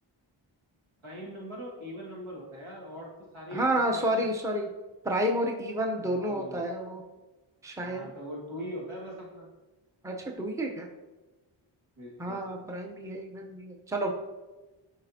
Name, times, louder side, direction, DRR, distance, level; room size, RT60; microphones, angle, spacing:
voice 1, 1.0-4.3 6.0-6.6 7.8-9.5 12.0-12.5, equal, 75° right, -3 dB, 2.0 m, -41 dB
voice 2, 3.5-4.7 5.0-7.0 7.6-8.1 10.0-10.9 12.2-14.1, right 1 dB, 5° right, 1 dB, 0.7 m, -30 dB
6.6 x 5.1 x 2.8 m, 1.2 s
cardioid pair, 40°, 50 cm